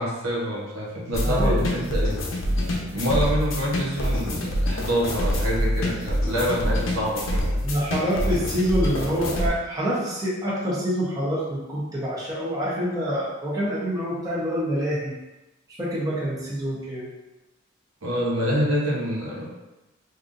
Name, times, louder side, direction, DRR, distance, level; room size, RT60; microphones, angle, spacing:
voice 1, 0.0-2.2 2.9-7.5 18.0-19.5, equal, 80° right, -4 dB, 1.0 m, -26 dB
sound 1, 1.1-9.5, equal, 80° left, 0.7 m, -26 dB
voice 2, 1.2-2.0 7.6-15.1 15.8-17.1, equal, 20° right, -7 dB, 0.9 m, -26 dB
5.2 x 2.6 x 2.5 m, 1.0 s
head